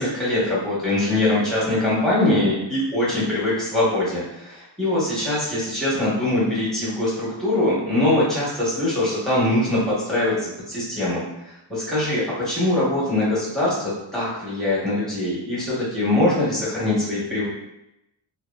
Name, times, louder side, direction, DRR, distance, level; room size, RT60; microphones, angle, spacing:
voice 1, 0.0-11.2 11.7-17.5, left 1 dB, ahead, -8 dB, 1.1 m, -22 dB
2.9 x 2.2 x 2.3 m, 0.86 s
wide cardioid pair, 115°, 46 cm